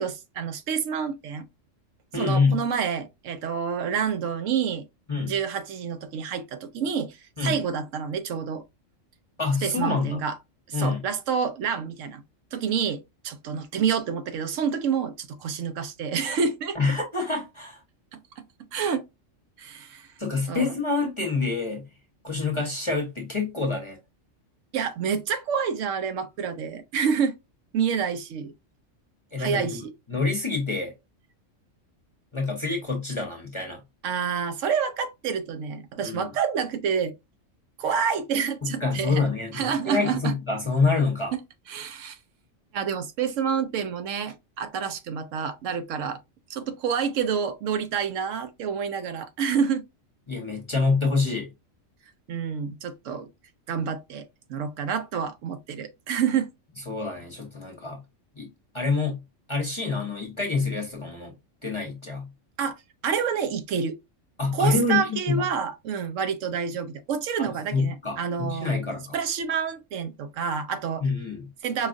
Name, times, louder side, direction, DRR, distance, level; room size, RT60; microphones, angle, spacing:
voice 1, 0.0-1.5 2.1-4.9 5.2-8.6 9.6-10.4 10.7-12.2 12.5-16.8 18.1-18.5 18.7-19.0 19.6-20.1 20.5-20.7 24.7-27.3 27.7-28.5 29.4-29.9 34.0-37.1 37.8-40.3 41.3-41.4 41.7-42.2 42.7-46.2 46.5-49.8 52.3-53.3 53.7-56.5 62.6-62.8 63.0-64.0 64.5-68.8 69.1-71.0 71.6-71.9, right 7 dB, 75° right, 0.9 m, -28 dB
voice 2, 2.1-2.6 5.1-5.3 7.4-7.6 9.4-10.2 10.7-11.0 16.7-17.8 20.2-21.9 22.2-24.0 29.3-29.8 30.1-30.9 32.3-33.8 36.0-36.3 38.6-41.3 50.3-51.5 56.9-58.0 58.4-58.5 58.7-59.2 59.5-61.3 61.6-62.3 64.4-65.4 67.4-69.2 71.0-71.5, left 4 dB, 25° left, 0.9 m, -26 dB
4.9 x 2.4 x 2.5 m
omnidirectional pair, 1.3 m